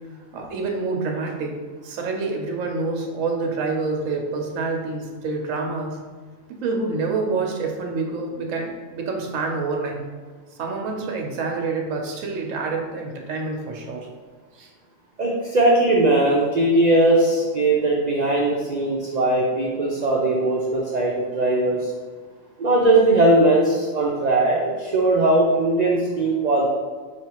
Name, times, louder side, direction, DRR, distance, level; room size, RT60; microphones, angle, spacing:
voice 1, 0.3-1.6 1.8-6.0 6.5-10.0 10.6-14.1 14.6-14.7, right 3 dB, 70° right, 1 dB, 1.1 m, -27 dB
voice 2, 15.2-21.9 22.6-26.7, right 2 dB, 90° right, -2 dB, 0.3 m, -19 dB
5.0 x 3.1 x 2.9 m, 1.5 s
omnidirectional pair, 1.4 m